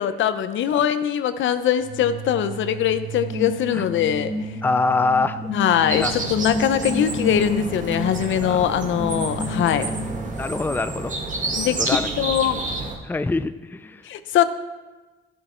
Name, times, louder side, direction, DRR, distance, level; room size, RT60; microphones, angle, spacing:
voice 1, 0.0-4.5 5.5-9.9 11.5-12.6 14.1-14.4, left 10 dB, 75° left, 11 dB, 0.7 m, -22 dB
sound 1, 1.8-10.4, equal, 75° right, 3.3 m, -31 dB
voice 2, 4.6-5.5 5.9-6.1 8.4-8.6 10.4-11.1 11.8-12.1 13.0-14.0, left 3 dB, 10° left, 12 dB, 0.4 m, -24 dB
sound 2, 5.9-12.9, right 3 dB, 40° right, 2.0 m, -30 dB
12.5 x 8.5 x 4.5 m, 1.2 s
cardioid pair, 90°, 20 cm